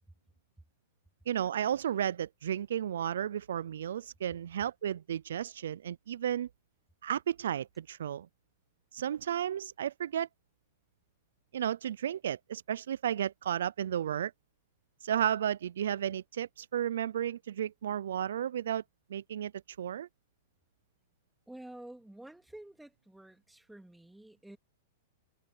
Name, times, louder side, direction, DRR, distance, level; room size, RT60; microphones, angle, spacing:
voice 1, 1.3-6.5 7.0-8.3 8.9-10.3 11.5-14.3 15.0-18.8 19.1-19.5 19.8-20.1, right 10 dB, 85° right, 0.3 m, -33 dB
voice 2, 21.5-24.6, right 1 dB, 5° right, 2.9 m, -50 dB
supercardioid pair, 155°, 0 cm